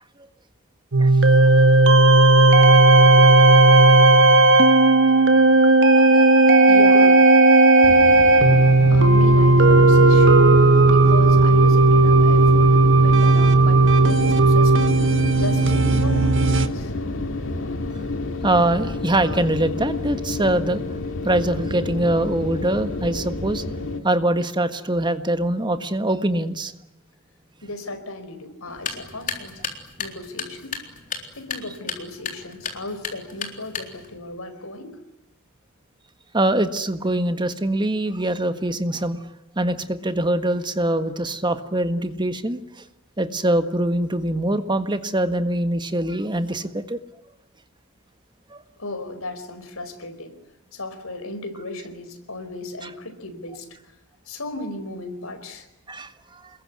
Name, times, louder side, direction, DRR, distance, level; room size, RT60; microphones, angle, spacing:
sound 1, 0.9-16.7, right 2 dB, 60° right, 1.7 m, -14 dB
voice 1, 5.9-6.7 18.4-20.8 21.2-23.6 24.0-26.7 36.3-39.2 39.6-42.6 43.2-47.0 48.5-48.6 52.8-52.9 55.9-56.4, right 1 dB, 20° right, 9 dB, 1.5 m, -23 dB
voice 2, 6.6-7.2 8.9-10.6 10.9-15.0 15.3-16.9 27.6-29.7 30.0-30.8 31.4-35.0 48.8-50.4 50.7-53.7 54.3-55.7, left 2 dB, 85° left, 9 dB, 4.7 m, -34 dB
sound 2, 7.8-24.0, left 2 dB, 65° left, 2.4 m, -30 dB
sound 3, 28.7-34.2, left 6 dB, 40° left, 3.9 m, -34 dB
28.0 x 22.0 x 9.7 m, 0.87 s
head